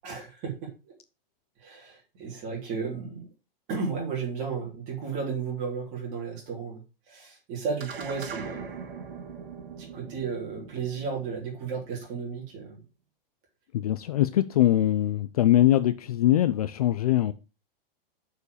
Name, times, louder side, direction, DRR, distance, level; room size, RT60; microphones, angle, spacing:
voice 1, 0.0-0.5 1.6-3.3 3.7-6.8 7.1-8.8 9.9-12.8, right 5 dB, 25° right, 3.2 m, -33 dB
sound 1, 7.8-12.4, right 6 dB, 70° right, 2.0 m, -41 dB
voice 2, 13.7-17.3, left 13 dB, 40° left, 0.4 m, -22 dB
6.9 x 4.9 x 6.4 m
supercardioid pair, 180°, 29 cm